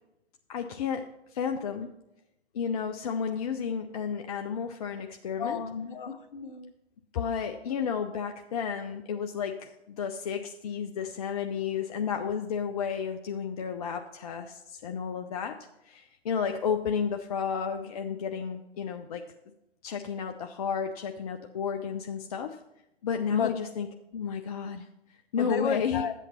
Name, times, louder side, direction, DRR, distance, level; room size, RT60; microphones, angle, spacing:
voice 1, 0.5-1.9 2.5-5.6 7.1-15.6 15.9-19.2 19.8-22.6 23.0-24.9 25.3-26.0, left 7 dB, 35° left, 5 dB, 0.5 m, -32 dB
voice 2, 5.4-6.7 23.3-23.5 25.4-26.1, left 6 dB, 50° left, 10 dB, 1.0 m, -32 dB
11.5 x 8.1 x 4.2 m, 0.87 s
figure-of-eight pair, 125°, 32 cm